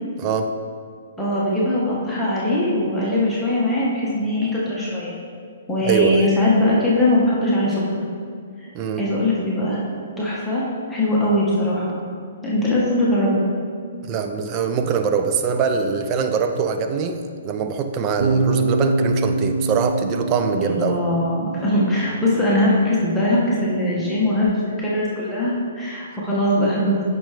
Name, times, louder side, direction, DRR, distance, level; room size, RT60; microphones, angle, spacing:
voice 1, 0.2-0.5 5.8-6.3 8.7-9.0 14.0-21.0, right 6 dB, 30° right, 6 dB, 0.6 m, -23 dB
voice 2, 1.2-5.2 5.7-8.0 8.6-8.7 9.0-9.8 10.2-10.6 10.9-12.0 12.4-13.4 20.6-27.0, left 1 dB, 5° left, -8 dB, 1.7 m, -21 dB
Bass guitar, 18.2-24.4, right 3 dB, 65° right, 0.9 m, -26 dB
8.8 x 6.1 x 3.6 m, 2.2 s
figure-of-eight pair, 125°, 0 cm